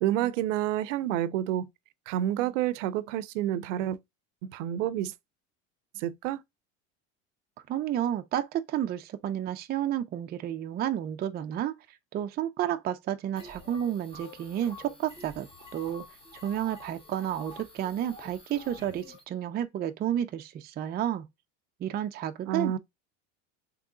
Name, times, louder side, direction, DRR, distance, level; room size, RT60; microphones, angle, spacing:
voice 1, 0.0-1.7 2.1-4.0 4.4-5.1 6.0-6.4 22.5-22.8, right 12 dB, 90° right, 0.5 m, -29 dB
voice 2, 7.7-11.7 12.1-15.5 15.7-16.0 16.4-21.3 21.8-22.8, right 11 dB, 25° right, 0.4 m, -31 dB
sound 1, 13.4-19.2, left 3 dB, 15° left, 1.5 m, -48 dB
3.6 x 3.0 x 3.7 m
supercardioid pair, 110°, 36 cm